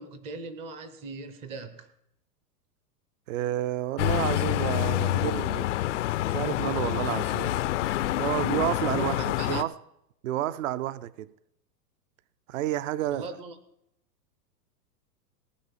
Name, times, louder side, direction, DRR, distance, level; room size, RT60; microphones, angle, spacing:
voice 1, 0.0-1.9 8.9-9.6 13.1-13.5, right 3 dB, 15° right, 0.5 m, -40 dB
voice 2, 3.3-5.7 6.3-7.6 8.2-9.7 10.2-11.3 12.5-13.3, right 13 dB, 50° right, 0.7 m, -30 dB
sound 1, 4.0-9.6, left 15 dB, 50° left, 0.5 m, -27 dB
18.5 x 8.7 x 7.4 m
supercardioid pair, 160°, 49 cm